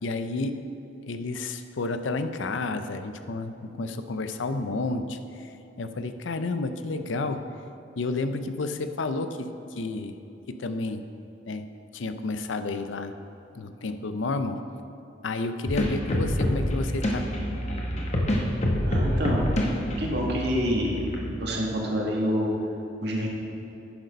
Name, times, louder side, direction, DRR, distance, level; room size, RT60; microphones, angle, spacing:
voice 1, 0.0-0.6 1.1-5.2 5.8-7.4 8.0-10.2 10.6-11.0 11.5-11.6 11.9-13.1 13.5-14.6 15.2-17.2, left 3 dB, 80° left, 9 dB, 0.6 m, -30 dB
sound 1, 15.7-21.3, equal, 35° left, 1.1 m, -27 dB
voice 2, 18.8-19.4 20.0-22.5 23.0-23.3, equal, 60° right, -2 dB, 1.8 m, -27 dB
10.0 x 6.7 x 5.3 m, 2.9 s
head